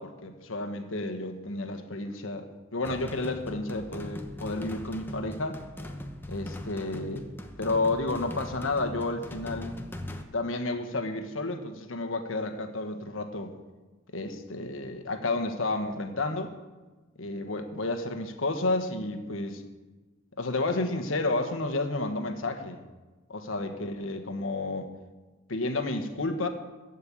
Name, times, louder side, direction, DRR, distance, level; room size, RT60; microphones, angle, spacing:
voice 1, 0.0-5.6 6.3-7.2 7.6-9.8 10.3-13.5 14.1-16.5 17.2-19.6 20.4-22.8 23.3-24.9 25.5-26.5, left 2 dB, 75° left, 6 dB, 1.3 m, -31 dB
sound 1, 2.8-10.2, left 1 dB, 10° left, 0.9 m, -40 dB
14.5 x 5.5 x 8.4 m, 1.2 s
head